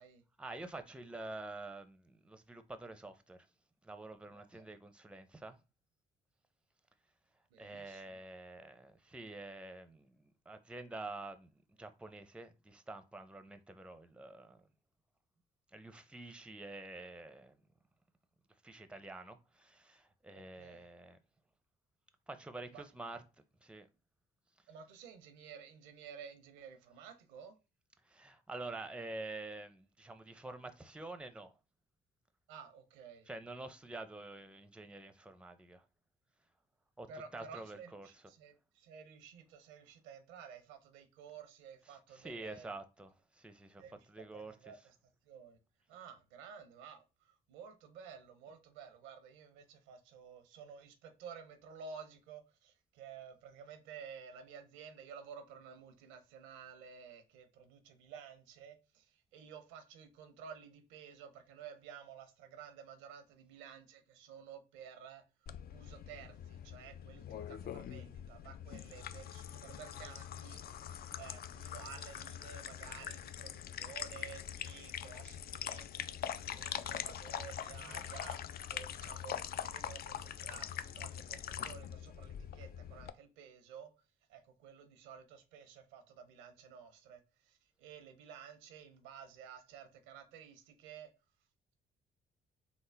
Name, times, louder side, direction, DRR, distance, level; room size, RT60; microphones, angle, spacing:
voice 1, 0.4-3.5 3.8-5.6 7.6-14.7 15.7-17.6 18.6-21.2 22.3-23.2 23.6-23.9 28.0-31.5 33.3-35.8 37.0-37.1 37.3-38.1 41.9-43.8 44.1-44.6 77.8-78.1, right 2 dB, 5° right, 0.6 m, -48 dB
voice 2, 4.3-4.7 7.5-8.2 20.3-20.9 22.7-22.8 24.7-27.5 32.5-33.3 37.1-42.8 43.8-44.9 45.3-45.6 45.9-65.2 65.7-70.6 70.9-83.9 84.3-91.1, right 7 dB, 90° right, 0.7 m, -53 dB
sound 1, 65.5-83.1, left 9 dB, 50° left, 0.4 m, -43 dB
3.5 x 2.1 x 3.4 m
supercardioid pair, 55°, 21 cm